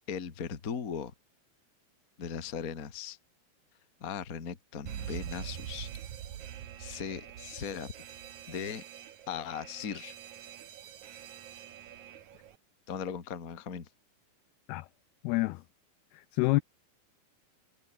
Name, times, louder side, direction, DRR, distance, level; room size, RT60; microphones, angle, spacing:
voice 1, 0.1-1.1 2.2-3.2 4.0-5.9 6.8-7.9 8.5-8.8 9.3-10.1 12.9-13.9, left 7 dB, 45° left, 1.1 m, -38 dB
Alarm, 4.9-12.6, right 10 dB, 55° right, 2.2 m, -44 dB
voice 2, 15.2-15.6 16.1-16.6, left 21 dB, 90° left, 2.2 m, -28 dB
omnidirectional pair, 5.2 m